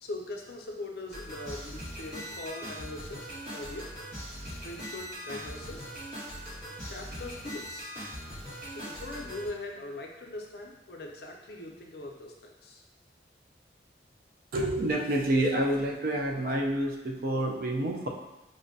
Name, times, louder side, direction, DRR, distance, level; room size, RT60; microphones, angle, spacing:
voice 1, 0.0-3.9 4.4-5.9 6.8-7.9 8.7-12.8, left 2 dB, 60° left, 1 dB, 0.5 m, -41 dB
sound 1, 1.1-9.5, equal, 70° right, 1.4 m, -41 dB
voice 2, 14.5-18.1, right 1 dB, 50° right, 1 dB, 0.4 m, -28 dB
4.9 x 2.1 x 2.6 m, 1.0 s
head